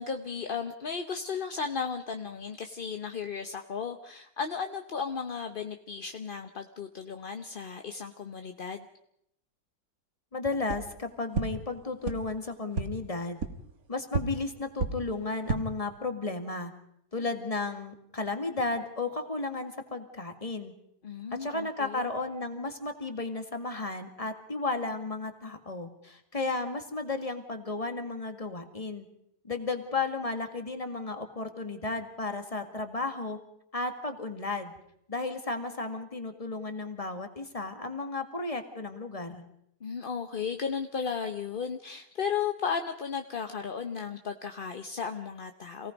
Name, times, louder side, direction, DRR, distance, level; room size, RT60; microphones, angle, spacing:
voice 1, 0.0-8.9 21.0-22.1 39.8-45.9, left 6 dB, 40° left, 6 dB, 0.9 m, -35 dB
voice 2, 10.3-13.4 13.9-16.7 17.1-20.7 21.3-29.1 29.4-33.4 33.7-34.7 35.1-39.4, left 3 dB, 20° left, 6 dB, 2.0 m, -34 dB
sound 1, 10.6-10.8 11.3-11.4 12.0-12.1 12.7-12.8 13.4-13.5 14.1-14.2 14.8-14.9 15.3-15.6, right 4 dB, 55° right, 2.0 m, -29 dB
27.5 x 18.5 x 5.3 m, 0.75 s
omnidirectional pair, 1.8 m